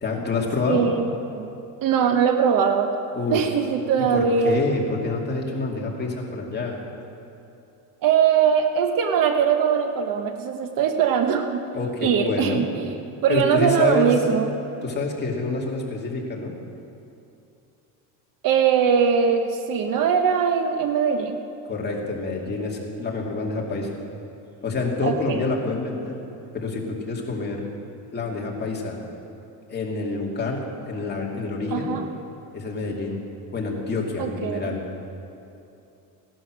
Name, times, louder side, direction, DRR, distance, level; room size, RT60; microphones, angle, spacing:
voice 1, 0.0-0.8 3.1-3.4 4.0-6.8 11.7-12.6 13.3-14.1 14.8-16.5 21.6-24.0 24.6-26.2 26.5-27.6 28.1-29.0 29.7-32.0 32.5-33.2 33.5-34.8, left 3 dB, 25° left, -2 dB, 2.5 m, -27 dB
voice 2, 0.7-1.1 1.4-1.5 1.8-2.9 3.3-4.6 8.0-11.6 12.0-13.0 13.2-14.5 18.4-21.3 25.0-25.4 31.7-32.1 34.2-34.7, right 7 dB, 50° right, 6 dB, 1.1 m, -21 dB
16.5 x 11.5 x 6.3 m, 2.7 s
cardioid pair, 130°, 44 cm